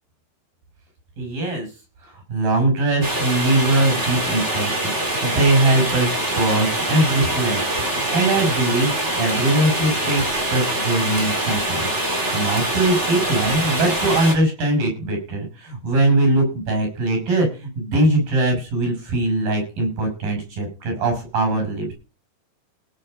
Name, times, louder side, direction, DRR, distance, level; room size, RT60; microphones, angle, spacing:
voice 1, 1.2-1.7 2.1-7.6 7.9-12.0 12.3-21.9, right 2 dB, 90° right, 5 dB, 8.1 m, -21 dB
sound 1, 3.0-14.3, right 1 dB, 20° right, 3.5 m, -24 dB
18.0 x 6.6 x 5.1 m, 0.33 s
omnidirectional pair, 4.0 m